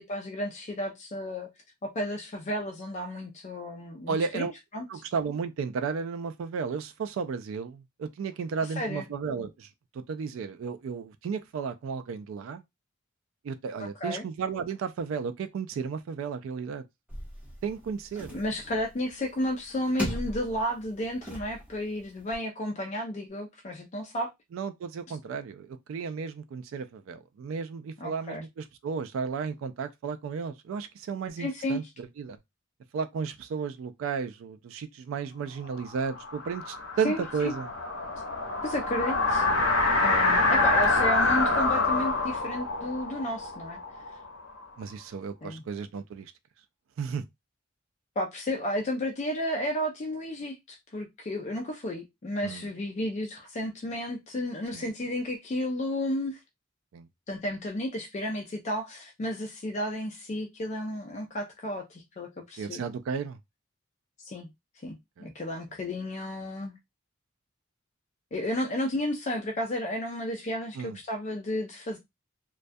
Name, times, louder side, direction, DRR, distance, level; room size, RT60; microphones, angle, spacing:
voice 1, 0.0-1.5 1.8-4.9 8.8-9.1 13.8-14.2 18.3-24.3 28.0-28.4 31.4-31.8 37.0-37.5 38.6-39.5 40.0-43.8 45.4-45.6 48.2-56.4 57.3-62.8 64.2-64.5 64.8-66.7 68.3-72.0, left 1 dB, 35° left, 0.4 m, -32 dB
voice 2, 4.1-4.5 4.9-12.6 13.4-16.8 17.6-18.4 24.5-32.4 32.9-37.7 44.8-46.3 47.0-47.2 52.4-52.7 54.7-54.9 56.9-57.1 62.6-63.4 65.2-65.3 70.7-71.0, right 5 dB, 75° right, 0.3 m, -33 dB
sound 1, 17.1-22.4, equal, 5° right, 0.8 m, -39 dB
sound 2, 35.9-44.6, left 3 dB, 80° left, 0.6 m, -26 dB
2.2 x 2.2 x 2.5 m
head